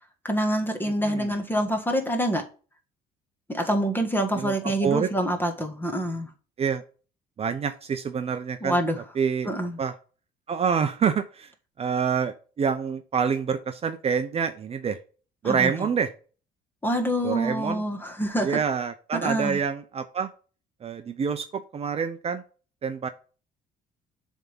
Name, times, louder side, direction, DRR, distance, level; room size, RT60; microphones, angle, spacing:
voice 1, 0.2-2.4 3.5-6.3 8.6-9.0 9.4-9.8 15.4-15.7 16.8-18.5 19.1-19.6, right 1 dB, 10° left, 1.5 m, -26 dB
voice 2, 1.0-1.3 4.3-4.5 4.8-5.1 6.6-6.8 7.4-8.8 9.2-9.5 9.8-9.9 10.5-11.5 11.8-15.0 15.4-16.1 17.2-17.8 18.4-20.3 20.8-22.4 22.8-23.1, right 6 dB, 35° right, 0.7 m, -27 dB
7.3 x 3.6 x 5.6 m
cardioid pair, 110°, 17 cm